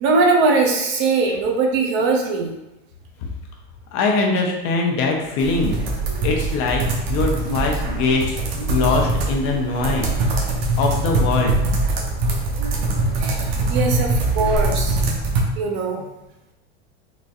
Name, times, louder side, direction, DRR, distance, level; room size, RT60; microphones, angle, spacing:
voice 1, 0.0-2.5 12.8-12.9 13.2-15.0 15.6-16.1, right 3 dB, 40° right, 2 dB, 0.5 m, -21 dB
voice 2, 3.9-5.9 6.2-6.8 7.1-8.4 8.7-10.5 10.8-11.6, left 3 dB, 45° left, 0 dB, 0.7 m, -22 dB
sound 1, 5.4-15.4, right 2 dB, 75° right, 0.9 m, -22 dB
3.9 x 2.5 x 2.4 m, 0.95 s
supercardioid pair, 135°, 30 cm